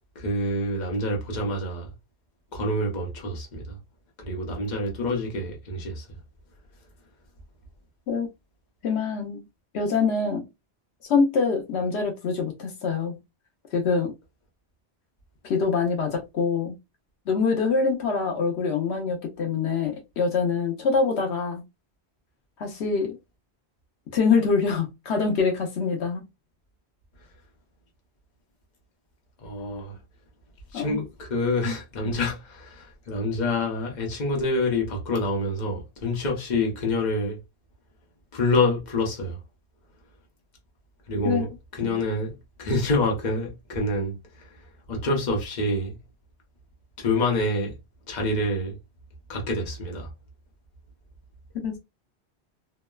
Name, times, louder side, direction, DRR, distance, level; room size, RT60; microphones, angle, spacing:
voice 1, 0.2-1.9 2.5-3.8 4.2-6.0 29.4-30.0 30.7-37.4 38.3-39.4 41.1-41.5 41.8-44.1 44.9-46.0 47.0-47.7 48.1-48.8 49.3-50.1, left 2 dB, 45° left, 0.9 m, -27 dB
voice 2, 8.8-9.4 9.7-10.4 11.1-13.1 13.7-14.1 15.4-16.7 17.3-21.6 22.6-23.2 24.1-26.2 30.7-31.0 31.6-31.7 41.2-41.5 41.8-41.9 51.6-51.8, left 5 dB, 80° left, 1.0 m, -24 dB
3.0 x 2.1 x 2.2 m
omnidirectional pair, 1.1 m